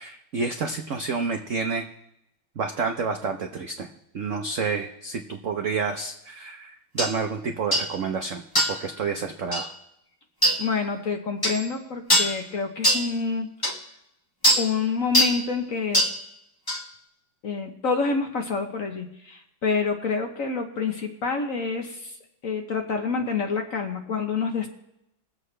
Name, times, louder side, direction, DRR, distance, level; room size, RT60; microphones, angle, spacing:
voice 1, 0.0-1.9 2.6-3.9 4.1-9.7, right 5 dB, 70° right, 4 dB, 0.7 m, -29 dB
sound 1, 7.0-7.1 7.7-7.9 8.6-8.8 9.5-9.7 10.4-10.6 11.4-11.6 12.1-12.4 12.8-13.1 13.6-13.7 14.4-14.7 15.1-15.4 15.9-16.2 16.7-16.8, equal, 15° left, 1.2 m, -21 dB
voice 2, 10.6-13.5 14.6-16.0 17.4-22.1 22.4-24.7, left 5 dB, 50° left, 4 dB, 1.1 m, -27 dB
21.5 x 7.7 x 3.2 m, 0.83 s
omnidirectional pair, 2.2 m